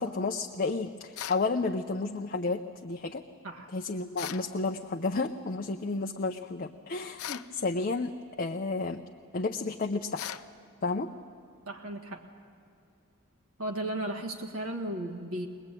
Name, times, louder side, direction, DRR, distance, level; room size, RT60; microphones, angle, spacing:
voice 1, 0.0-3.2 3.7-8.1 8.4-9.0 9.3-10.2 10.8-11.1, left 3 dB, 40° left, 3 dB, 0.7 m, -31 dB
sound 1, 1.2-1.5 4.2-4.5 7.2-7.5 10.2-10.5, left 10 dB, 85° left, 0.6 m, -38 dB
voice 2, 11.6-12.3 13.6-15.5, right 1 dB, 75° right, 2 dB, 1.8 m, -35 dB
22.5 x 20.5 x 9.1 m, 2.6 s
head